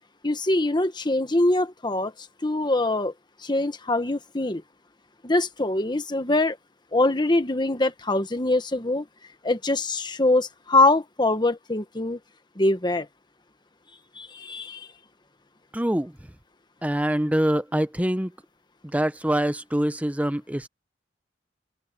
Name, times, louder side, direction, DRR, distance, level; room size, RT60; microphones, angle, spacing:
voice 1, 0.2-3.1 3.4-4.6 5.2-6.6 6.9-9.1 9.4-12.2 12.6-13.1 14.1-14.9, left 2 dB, 25° left, 1.3 m, -23 dB
voice 2, 15.7-16.1 16.8-18.3 18.8-20.7, right 1 dB, 10° right, 0.9 m, -24 dB
open air
head